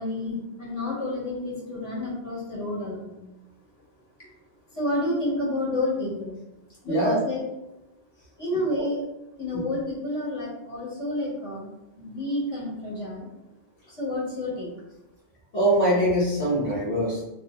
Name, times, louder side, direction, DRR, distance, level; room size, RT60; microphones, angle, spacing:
voice 1, 0.0-3.1 4.7-6.4 6.8-7.4 8.4-9.0 9.4-11.7 12.0-13.3 13.9-14.7, left 1 dB, 30° left, -7 dB, 1.4 m, -29 dB
voice 2, 6.9-7.2 8.7-8.8 9.5-9.7 15.5-17.3, right 1 dB, 90° left, -8 dB, 1.7 m, -23 dB
3.7 x 2.7 x 3.1 m, 0.93 s
omnidirectional pair, 1.1 m